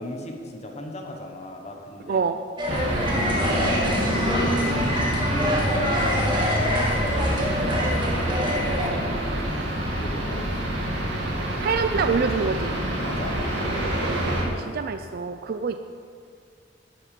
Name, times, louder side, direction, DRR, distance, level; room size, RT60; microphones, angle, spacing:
voice 1, 0.0-2.2 2.7-6.5 7.1-7.4 8.0-10.7 13.0-13.4, left 1 dB, 40° left, 3 dB, 1.2 m, -38 dB
voice 2, 2.1-2.4 11.6-12.8 14.3-15.8, right 5 dB, 55° right, 8 dB, 0.4 m, -26 dB
sound 1, 2.6-8.9, equal, 25° right, 2.2 m, -26 dB
sound 2, 2.7-14.4, equal, 80° right, 2.4 m, -26 dB
11.5 x 11.0 x 5.2 m, 2.2 s
head